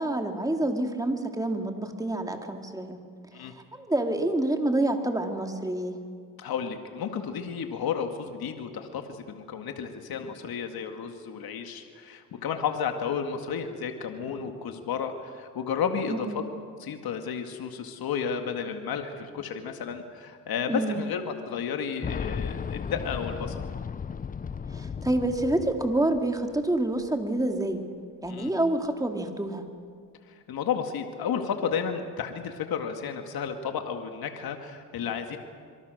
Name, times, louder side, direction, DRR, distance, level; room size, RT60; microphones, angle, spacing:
voice 1, 0.0-3.0 3.4-5.9 16.1-16.5 20.7-21.0 24.7-27.8 28.2-29.6, right 1 dB, 10° right, 4 dB, 2.7 m, -28 dB
voice 2, 6.4-16.4 16.8-23.6 28.3-28.5 30.3-35.4, left 7 dB, 60° left, 5 dB, 2.1 m, -32 dB
Boom, 22.0-26.8 27.0-27.1 28.2-28.3, left 6 dB, 20° left, 0.5 m, -35 dB
26.0 x 23.5 x 6.6 m, 2.1 s
cardioid pair, 95°, 40 cm